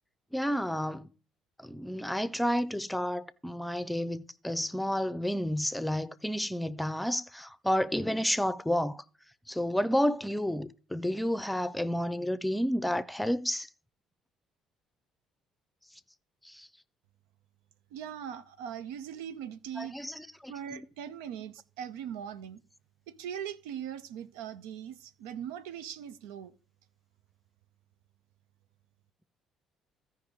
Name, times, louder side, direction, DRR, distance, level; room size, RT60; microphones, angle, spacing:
voice 1, 0.3-1.1 1.6-9.0 9.5-13.7 16.6-16.7 19.8-20.8, equal, 5° left, 0.6 m, -31 dB
voice 2, 17.9-19.9 20.5-22.6 23.1-26.5, right 9 dB, 65° right, 0.6 m, -40 dB
15.5 x 5.3 x 3.7 m
figure-of-eight pair, 50°, 0 cm